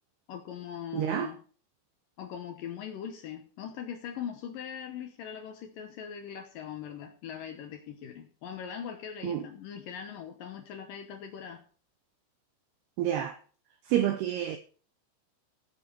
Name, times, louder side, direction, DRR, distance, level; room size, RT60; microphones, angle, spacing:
voice 1, 0.3-1.4 2.2-11.6, left 8 dB, 80° left, 2.0 m, -41 dB
voice 2, 0.9-1.3 9.2-9.5 13.0-13.4 13.9-14.6, right 11 dB, 85° right, 2.3 m, -28 dB
15.5 x 7.5 x 4.6 m
omnidirectional pair, 5.4 m